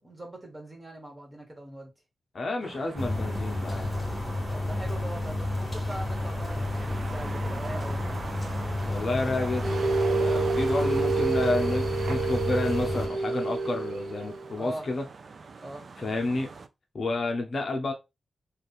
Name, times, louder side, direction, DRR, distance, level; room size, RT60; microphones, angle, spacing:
voice 1, 0.0-1.9 4.5-8.2 14.6-14.9 15.6-15.9, right 1 dB, 15° right, 1.7 m, -41 dB
voice 2, 2.3-3.9 8.8-9.8 10.1-15.0 16.0-16.5 16.9-17.9, left 2 dB, 50° left, 0.7 m, -30 dB
sound 1, 2.6-16.7, right 4 dB, 50° right, 0.4 m, -42 dB
sound 2, 3.0-13.1, left 2 dB, 15° left, 1.7 m, -31 dB
sound 3, 9.6-14.5, right 4 dB, 85° right, 0.9 m, -28 dB
3.3 x 2.5 x 4.1 m
wide cardioid pair, 110°, 0 cm